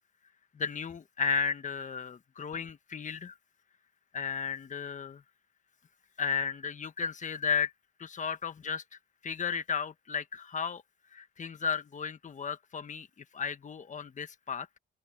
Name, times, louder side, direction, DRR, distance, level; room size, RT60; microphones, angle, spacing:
voice 1, 0.5-3.3 4.1-5.2 6.2-7.7 8.0-8.8 9.2-10.8 11.1-13.1 13.3-14.8, left 6 dB, 40° left, 1.4 m, -34 dB
open air
cardioid pair, 90°, 20 cm